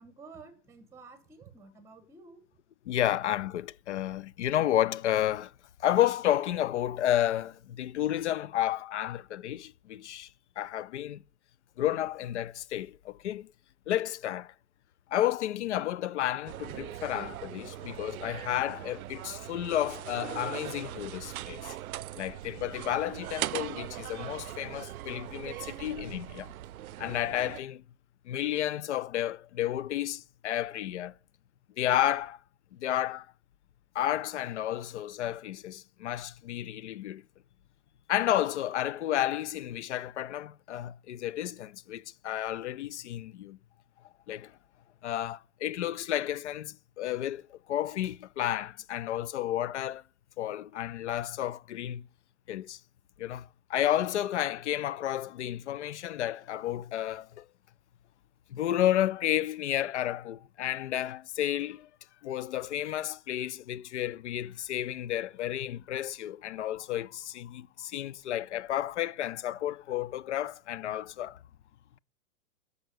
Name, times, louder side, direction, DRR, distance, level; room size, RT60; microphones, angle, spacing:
voice 1, 0.0-2.4, right 4 dB, 5° right, 1.2 m, -51 dB
voice 2, 2.9-5.5 5.8-10.3 10.6-11.2 11.8-13.5 13.9-14.5 15.1-21.7 22.2-26.5 27.0-27.8 28.3-31.1 31.8-32.4 32.7-33.3 33.9-37.2 38.1-43.6 44.3-44.5 45.0-50.0 50.4-52.0 52.5-52.8 53.2-57.4 58.5-61.9 62.2-71.4, left 12 dB, 50° left, 0.6 m, -31 dB
sound 1, 16.5-27.6, right 14 dB, 70° right, 0.6 m, -40 dB
12.0 x 6.9 x 9.0 m
hypercardioid pair, 170°, 45 cm